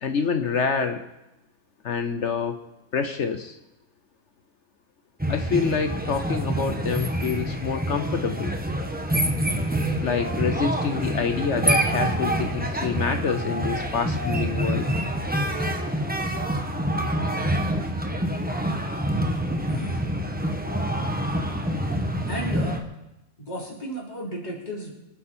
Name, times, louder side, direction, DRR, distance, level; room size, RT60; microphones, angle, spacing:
voice 1, 0.0-1.1 1.8-2.6 2.9-3.6 5.3-8.5 10.0-14.9, left 6 dB, 55° left, 8 dB, 1.0 m, -27 dB
sound 1, 5.2-22.8, right 1 dB, 5° right, 1.1 m, -26 dB
voice 2, 19.7-20.0 22.3-22.8 23.5-24.9, equal, 30° left, -4 dB, 3.6 m, -33 dB
25.5 x 8.8 x 4.4 m, 0.95 s
omnidirectional pair, 1.5 m